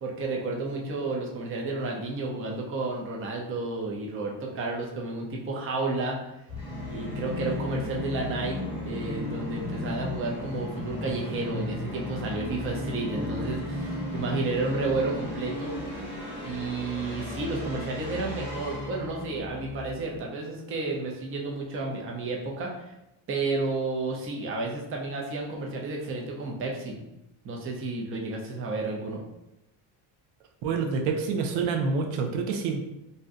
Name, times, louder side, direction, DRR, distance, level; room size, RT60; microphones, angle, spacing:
voice 1, 0.0-6.3 6.9-15.7 16.4-22.9 23.3-27.0 27.4-29.2, right 3 dB, 30° right, -1 dB, 0.5 m, -31 dB
Musical instrument, 6.5-20.2, left 1 dB, 5° right, 1.1 m, -35 dB
voice 2, 30.6-32.8, right 5 dB, 85° right, 3 dB, 0.6 m, -27 dB
2.6 x 2.1 x 3.7 m, 0.88 s
cardioid pair, 145°, 45 cm